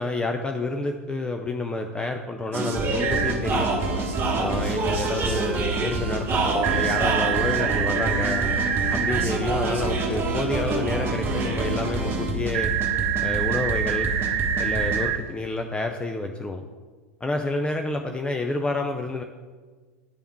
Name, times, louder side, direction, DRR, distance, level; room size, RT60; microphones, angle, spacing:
voice 1, 0.0-3.7 4.3-8.5 8.9-12.7 13.2-14.1 14.6-16.6 17.2-19.2, left 2 dB, 10° left, 4 dB, 0.4 m, -29 dB
sound 1, 2.5-15.1, right 2 dB, 30° right, 1.2 m, -26 dB
sound 2, 3.0-3.3 6.6-9.3 12.5-15.2, right 10 dB, 45° right, 0.7 m, -26 dB
10.0 x 3.5 x 4.5 m, 1.4 s
hypercardioid pair, 90°, 8 cm